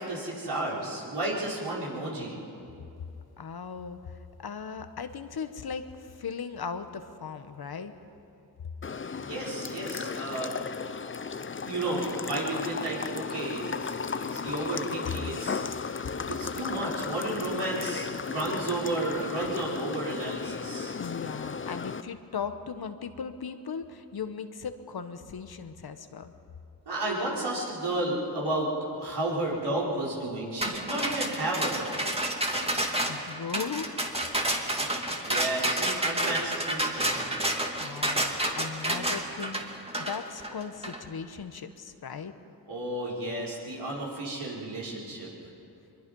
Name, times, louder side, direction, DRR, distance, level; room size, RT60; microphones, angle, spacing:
voice 1, 0.0-2.4 9.2-10.6 11.6-15.6 16.3-21.0 26.9-28.7 29.0-32.0 34.7-37.4 42.7-45.3, right 2 dB, 75° right, -5 dB, 5.7 m, -32 dB
voice 2, 3.4-7.9 15.1-15.2 21.0-26.3 32.5-33.9 37.8-42.3, left 6 dB, 65° left, 9 dB, 1.3 m, -38 dB
sound 1, 8.8-22.0, left 5 dB, 30° left, 0.7 m, -35 dB
sound 2, 30.6-41.0, right 1 dB, 15° right, 2.2 m, -29 dB
23.5 x 22.0 x 5.5 m, 2.7 s
cardioid pair, 70°, 41 cm